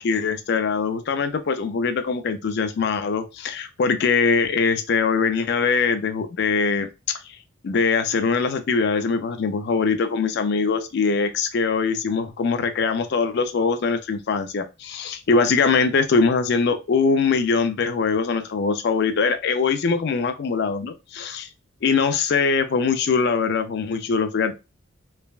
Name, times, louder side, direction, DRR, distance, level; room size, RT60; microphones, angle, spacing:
voice 1, 0.0-7.2 7.6-21.5 21.8-24.5, left 5 dB, 50° left, 8 dB, 0.4 m, -22 dB
3.3 x 2.1 x 2.3 m, 0.27 s
head